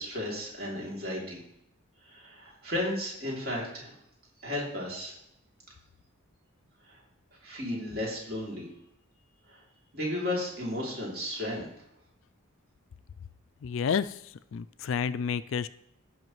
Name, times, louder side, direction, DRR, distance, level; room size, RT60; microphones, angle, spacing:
voice 1, 0.0-1.4 2.1-3.9 4.4-5.1 6.9-7.0 7.4-8.7 9.5-9.6 9.9-11.7, left 1 dB, 45° right, -3 dB, 2.9 m, -34 dB
voice 2, 13.6-14.2 14.5-15.7, left 6 dB, 60° left, 14 dB, 0.3 m, -30 dB
16.0 x 5.7 x 3.1 m, 0.77 s
head